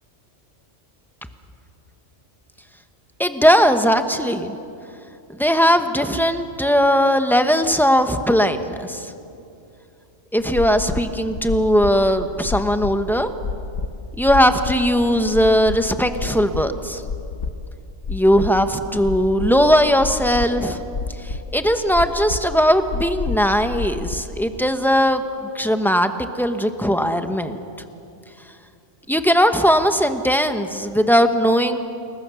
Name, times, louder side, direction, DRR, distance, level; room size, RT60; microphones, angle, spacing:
voice 1, 3.2-4.6 5.4-9.1 10.3-13.3 14.2-17.0 18.1-20.8 21.5-25.2 25.5-27.6 29.1-31.8, equal, ahead, 7 dB, 1.0 m, -18 dB
sound 1, 10.4-24.2, left 4 dB, 70° left, 1.5 m, -30 dB
29.5 x 21.5 x 7.0 m, 2.6 s
omnidirectional pair, 1.3 m